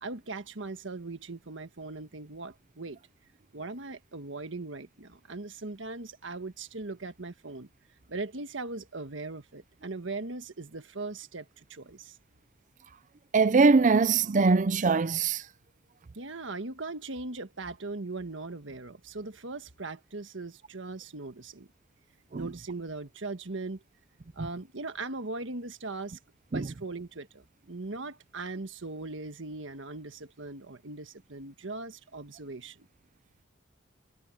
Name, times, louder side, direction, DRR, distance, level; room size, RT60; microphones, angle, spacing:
voice 1, 0.0-3.0 3.5-7.7 8.1-12.2 16.1-21.7 22.3-23.8 24.3-26.2 26.5-32.9, right 3 dB, 80° right, 1.5 m, -39 dB
voice 2, 13.3-15.4 22.3-22.4 24.4-24.5 26.5-26.7, right 4 dB, 40° right, 0.5 m, -22 dB
head